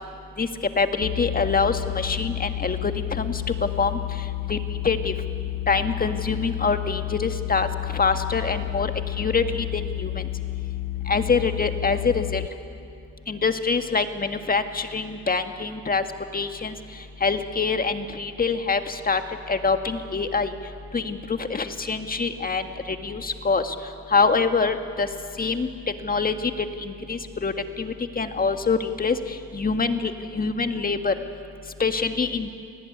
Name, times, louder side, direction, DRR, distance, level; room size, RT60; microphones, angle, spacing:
voice 1, 0.8-2.9 3.2-3.3 3.8-4.0 4.5-4.6 4.8-5.1 5.7-7.7 7.9-8.9 9.2-9.7 10.0-10.1 11.1-12.4 13.3-16.0 16.3-16.7 17.2-19.2 19.5-20.5 20.9-23.8 24.1-25.1 25.4-25.7 26.0-26.3 26.8-27.5 27.8-29.2 29.5-31.1 31.8-32.5, left 4 dB, 30° left, 7 dB, 1.8 m, -24 dB
sound 1, 1.0-12.5, left 16 dB, 85° left, 0.7 m, -31 dB
29.0 x 19.0 x 9.5 m, 2.4 s
cardioid pair, 90°, 30 cm